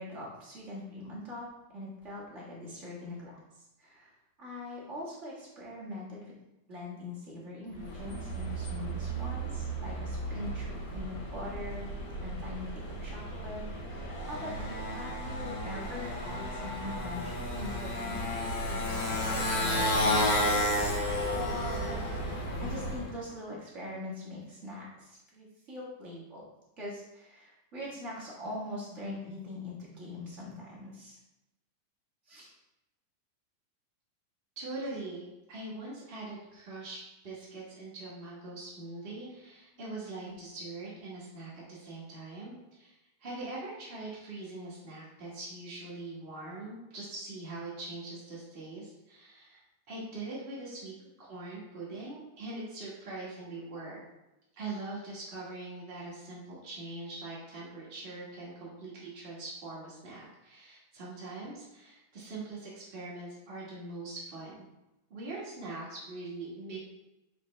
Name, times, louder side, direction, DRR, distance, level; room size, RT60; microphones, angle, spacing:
voice 1, 0.0-1.5 1.7-3.4 3.8-4.1 4.4-6.3 6.7-11.9 12.2-13.6 13.9-22.1 22.6-26.4 26.8-31.2 32.2-32.5 40.2-40.4, left 2 dB, 35° right, -7 dB, 1.1 m, -42 dB
Motorcycle, 7.8-23.1, equal, 75° left, 2.6 m, -33 dB
voice 2, 34.6-37.0 37.2-49.6 49.9-50.9 51.2-54.0 54.5-64.7 65.1-66.8, right 2 dB, 60° right, -7 dB, 0.6 m, -42 dB
6.7 x 4.8 x 3.2 m, 0.96 s
omnidirectional pair, 3.6 m